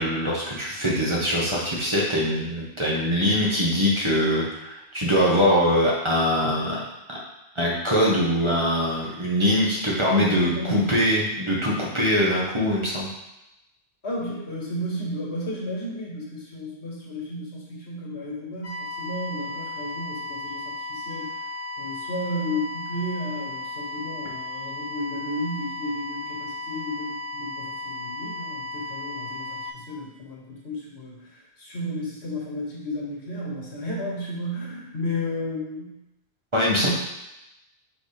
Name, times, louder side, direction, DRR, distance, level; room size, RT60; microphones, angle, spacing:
voice 1, 0.0-6.8 7.1-7.2 7.5-13.1 36.5-36.9, equal, 25° right, -5 dB, 1.4 m, -23 dB
voice 2, 10.1-10.9 14.0-21.3 21.8-36.0 36.8-36.9, left 1 dB, 80° left, -4 dB, 1.9 m, -33 dB
sound 1, 18.6-29.7, left 2 dB, 65° left, 1.0 m, -35 dB
4.9 x 4.2 x 5.0 m, 0.90 s
omnidirectional pair, 1.1 m